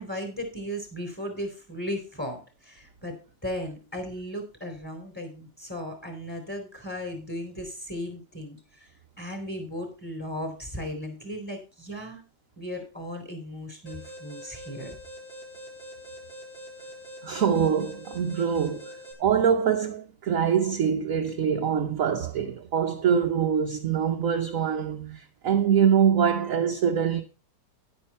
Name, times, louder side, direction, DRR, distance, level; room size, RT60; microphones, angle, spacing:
voice 1, 0.0-8.9 9.2-12.2 12.6-14.9, equal, 5° left, 3.8 m, -36 dB
Alarm, 13.9-19.1, equal, 85° left, 4.0 m, -44 dB
voice 2, 17.2-18.9 19.2-27.2, right 7 dB, 55° right, 1.1 m, -24 dB
10.5 x 9.3 x 4.3 m
omnidirectional pair, 2.0 m